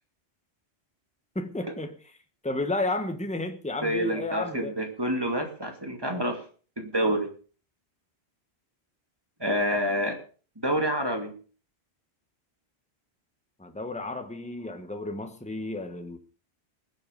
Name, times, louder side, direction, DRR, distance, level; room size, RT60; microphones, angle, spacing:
voice 1, 1.3-2.0 2.4-4.7 13.6-16.2, left 2 dB, 5° left, 1.3 m, -32 dB
voice 2, 3.8-6.4 6.8-7.3 9.4-10.2 10.6-11.3, equal, 20° right, 2.5 m, -28 dB
20.0 x 8.1 x 5.3 m
omnidirectional pair, 1.1 m